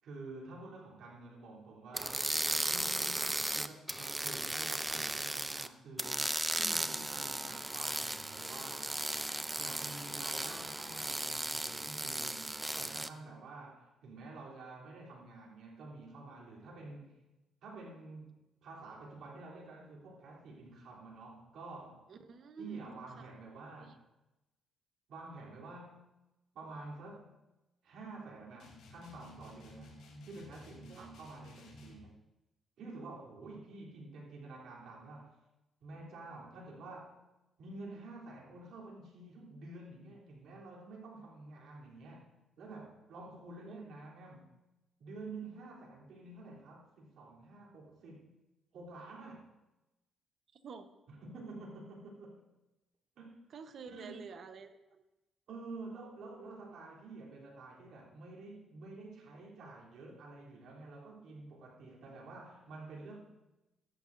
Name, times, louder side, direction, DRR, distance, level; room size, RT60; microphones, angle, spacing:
voice 1, 0.0-2.3 2.7-9.0 9.6-17.2 17.6-22.1 22.6-24.0 25.1-26.1 26.5-27.3 27.8-30.0 30.3-32.2 32.8-35.3 35.8-37.2 37.6-42.3 42.6-44.5 45.0-48.3 48.7-49.5 51.1-52.4 53.2-53.4 53.9-54.2 55.5-63.2, right 3 dB, 75° right, -3 dB, 3.3 m, -49 dB
sound 1, 1.9-5.7 6.0-13.1, right 1 dB, 10° right, 0.5 m, -36 dB
voice 2, 22.1-23.3 23.8-23.9 30.9-31.2 43.6-43.8 50.5-50.9 53.5-55.0, right 5 dB, 55° right, 9 dB, 0.9 m, -50 dB
sound 2, 28.6-32.1, left 1 dB, 80° left, 2.2 m, -54 dB
14.0 x 11.0 x 2.6 m, 0.98 s
cardioid pair, 90°, 0 cm